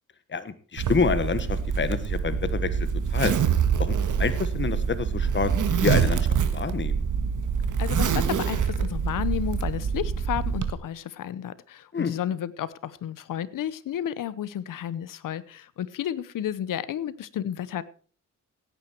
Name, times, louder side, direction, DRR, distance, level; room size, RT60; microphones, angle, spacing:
voice 1, 0.3-3.3 3.8-7.0 11.9-12.1, left 5 dB, 35° left, 12 dB, 1.3 m, -28 dB
Zipper (clothing), 0.8-10.7, right 7 dB, 70° right, 1.6 m, -25 dB
voice 2, 7.8-17.8, left 10 dB, 80° left, 17 dB, 0.9 m, -32 dB
16.5 x 9.3 x 4.5 m, 0.41 s
cardioid pair, 80°, 32 cm